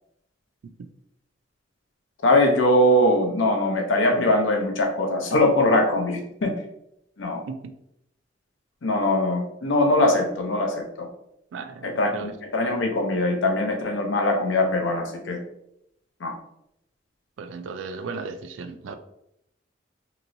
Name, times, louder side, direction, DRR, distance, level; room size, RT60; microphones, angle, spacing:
voice 1, 2.2-6.5 7.2-7.4 8.8-11.1 11.8-15.4 16.2-16.3, left 1 dB, 85° left, 0.6 m, -22 dB
voice 2, 11.5-12.3 17.4-18.9, right 4 dB, 85° right, 0.3 m, -35 dB
3.0 x 2.9 x 2.6 m
head